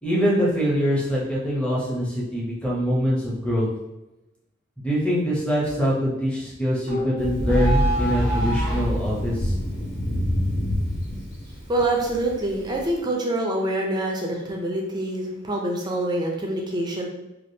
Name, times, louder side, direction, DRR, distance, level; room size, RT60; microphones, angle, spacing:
voice 1, 0.0-3.7 4.8-9.5, equal, 5° left, -6 dB, 0.8 m, -24 dB
sound 1, 6.9-9.0, equal, 55° left, 1.1 m, -23 dB
Thunder, 7.2-12.9, equal, 85° left, 0.8 m, -28 dB
voice 2, 11.7-17.1, right 1 dB, 20° right, 0 dB, 0.5 m, -26 dB
3.3 x 2.4 x 2.7 m, 0.96 s
head